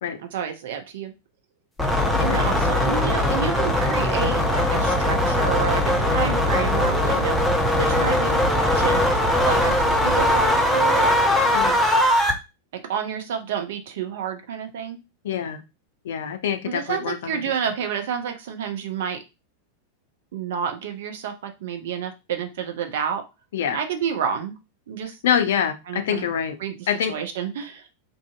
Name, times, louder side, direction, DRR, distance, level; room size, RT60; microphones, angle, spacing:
voice 1, 0.2-1.1 2.2-11.1 12.7-15.0 16.7-19.2 20.3-23.2 23.7-24.6 24.9-25.2 25.9-26.2 26.6-27.9, right 8 dB, 55° right, 6 dB, 0.5 m, -30 dB
sound 1, 1.8-12.3, left 1 dB, ahead, 0.6 m, -20 dB
voice 2, 2.3-2.6 11.5-11.8 15.2-15.6 16.0-17.4 23.5-23.8 25.2-26.6 26.9-27.1, left 8 dB, 60° left, 8 dB, 0.4 m, -25 dB
2.6 x 2.5 x 2.3 m, 0.26 s
figure-of-eight pair, 90°, 0 cm